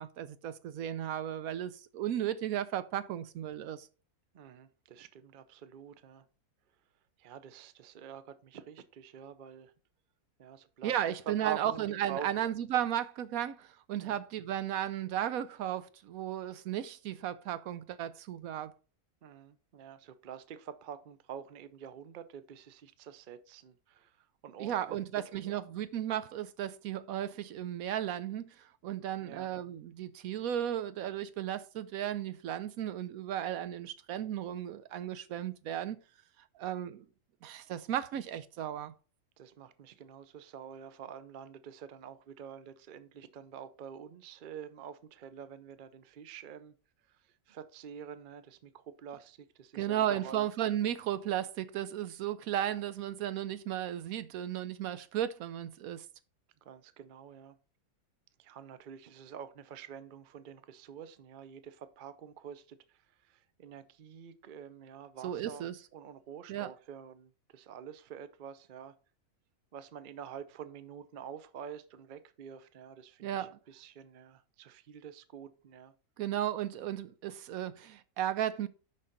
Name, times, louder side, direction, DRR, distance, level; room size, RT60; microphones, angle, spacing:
voice 1, 0.0-3.9 10.8-18.7 24.6-28.5 28.8-36.0 36.6-37.1 37.4-38.9 49.7-56.0 65.2-65.7 66.5-66.7 73.2-73.5 76.2-78.7, right 11 dB, 75° right, 1.0 m, -35 dB
voice 2, 4.3-6.3 7.2-9.7 10.4-11.0 11.3-12.3 14.0-14.2 19.2-25.0 25.3-25.5 29.2-29.5 39.4-46.7 47.1-50.5 56.6-57.6 58.4-65.7 65.9-69.0 69.7-75.9, right 8 dB, 50° right, 0.6 m, -47 dB
6.4 x 5.6 x 5.1 m
omnidirectional pair, 1.6 m